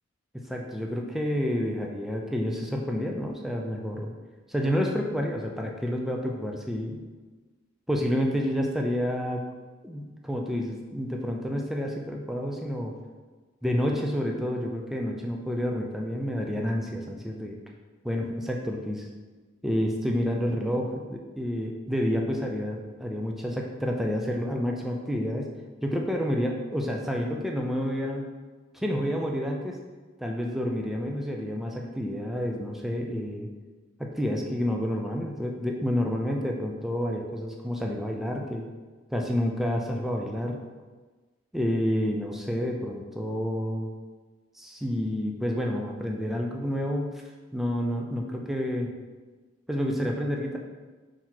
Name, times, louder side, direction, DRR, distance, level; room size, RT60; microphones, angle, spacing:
voice 1, 0.5-4.1 4.5-7.0 7.9-9.4 9.8-12.9 13.6-17.6 18.0-19.0 19.6-25.5 25.8-28.3 28.7-29.8 30.2-33.5 34.0-38.6 39.1-40.6 41.5-43.9 44.5-47.1 47.5-48.9 49.7-50.6, equal, ahead, 0 dB, 0.5 m, -29 dB
4.7 x 4.6 x 5.8 m, 1.3 s
head